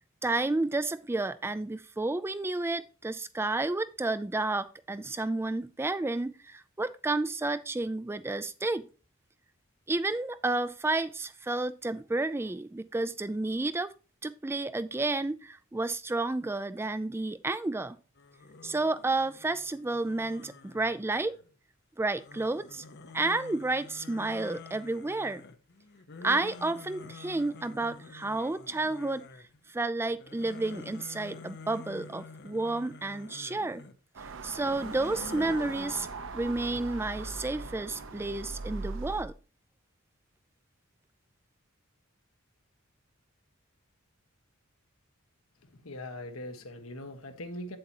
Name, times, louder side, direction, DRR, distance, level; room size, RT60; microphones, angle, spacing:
voice 1, 0.2-8.9 9.9-13.9 14.2-18.0 18.6-21.4 22.0-22.8 23.1-25.4 26.2-29.3 29.7-33.9 34.4-36.1 36.3-39.3, right 2 dB, 10° right, 0.4 m, -31 dB
sound 1, 18.2-21.5 22.2-29.6 30.0-33.9 34.5-36.1, left 3 dB, 55° left, 0.9 m, -48 dB
sound 2, 34.2-39.2, right 3 dB, 65° right, 0.8 m, -40 dB
voice 2, 45.6-47.8, left 1 dB, 70° left, 1.4 m, -41 dB
8.8 x 7.7 x 2.8 m
head